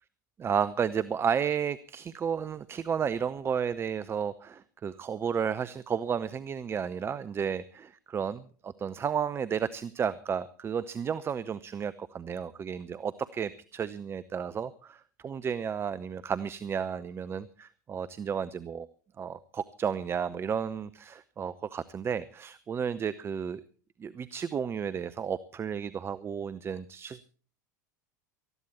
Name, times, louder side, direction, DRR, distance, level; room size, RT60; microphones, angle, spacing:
voice 1, 0.4-18.9 19.2-23.6 24.0-27.2, right 7 dB, 25° right, 15 dB, 0.7 m, -32 dB
19.0 x 14.5 x 4.3 m, 0.41 s
figure-of-eight pair, 80°, 10 cm